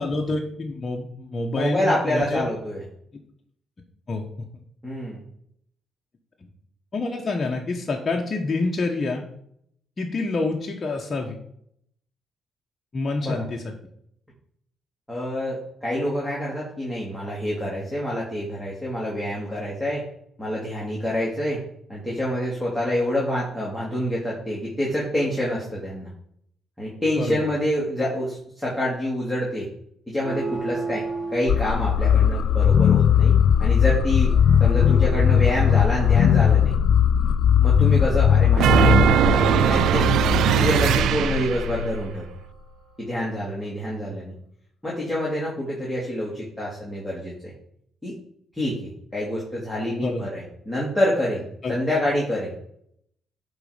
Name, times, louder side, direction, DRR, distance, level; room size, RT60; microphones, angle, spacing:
voice 1, 0.0-2.5 4.1-4.2 6.9-9.3 10.0-11.4 12.9-13.7 27.2-27.4 50.0-50.2 51.6-51.7, left 3 dB, 35° left, 0 dB, 1.2 m, -27 dB
voice 2, 1.5-2.8 4.8-5.2 13.2-13.4 15.1-20.0 20.4-21.6 21.9-26.1 26.8-29.7 30.1-31.0 31.3-33.3 33.6-34.3 34.6-36.7 37.6-40.2 40.5-42.2 43.0-44.3 44.8-47.3 48.0-48.1 48.6-52.5, equal, 5° left, -6 dB, 2.6 m, -27 dB
sound 1, 30.2-36.4, right 3 dB, 45° right, 2.2 m, -35 dB
sound 2, 31.5-42.4, left 8 dB, 70° left, 0.4 m, -19 dB
sound 3, 38.6-41.8, right 10 dB, 80° right, 0.3 m, -20 dB
11.0 x 4.0 x 5.1 m, 0.70 s
cardioid pair, 90°, 0 cm